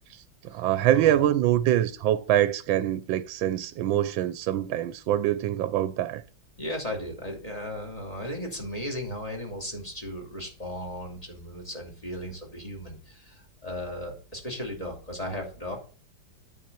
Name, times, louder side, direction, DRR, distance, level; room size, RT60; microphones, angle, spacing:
voice 1, 0.1-6.2, right 12 dB, 85° right, 1.4 m, -25 dB
voice 2, 0.8-1.2 6.6-15.8, left 1 dB, 20° left, 2.8 m, -36 dB
9.3 x 5.9 x 6.9 m
omnidirectional pair, 2.1 m